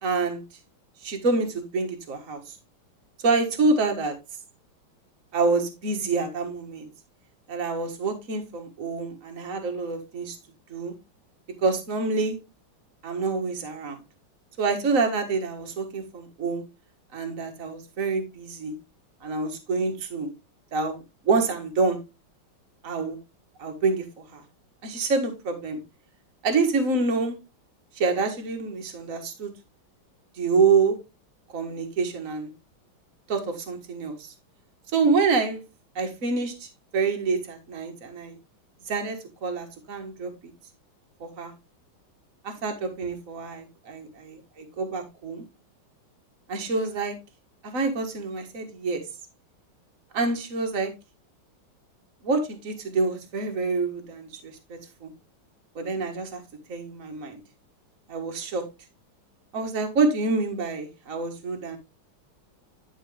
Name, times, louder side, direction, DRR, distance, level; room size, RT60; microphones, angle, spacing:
voice 1, 0.0-0.4 1.0-2.6 3.2-4.2 5.3-6.9 7.5-10.4 10.7-10.9 11.6-12.4 13.0-14.0 14.6-16.6 17.1-18.7 19.2-20.3 20.7-22.0 22.8-23.2 23.6-24.1 24.3-24.4 24.8-25.8 26.4-27.4 28.0-29.5 30.4-31.0 31.5-32.5 33.3-34.3 34.9-35.6 36.0-38.4 38.9-39.2 39.4-40.3 41.2-41.5 42.4-45.4 46.5-47.2 47.6-49.0 50.1-50.9 52.2-55.1 55.8-56.4 56.7-57.4 58.1-58.6 59.5-61.8, right 4 dB, 40° right, 4 dB, 1.8 m, -27 dB
10.5 x 5.3 x 3.3 m, 0.25 s
omnidirectional pair, 2.3 m